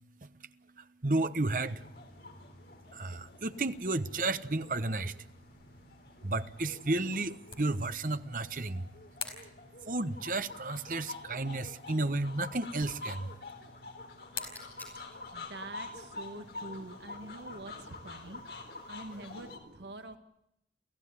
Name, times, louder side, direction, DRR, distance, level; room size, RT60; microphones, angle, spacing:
voice 1, 0.2-1.9 2.9-5.2 6.2-8.9 9.8-13.3, right 2 dB, 50° right, 1.1 m, -33 dB
sound 1, 1.6-19.6, left 3 dB, 65° left, 3.9 m, -47 dB
sound 2, 4.8-18.9, left 6 dB, 30° left, 4.6 m, -51 dB
sound 3, 14.3-19.3, left 2 dB, 10° left, 6.3 m, -59 dB
voice 2, 15.3-18.5 18.9-20.2, right 2 dB, 80° right, 1.7 m, -45 dB
29.0 x 16.0 x 9.8 m
head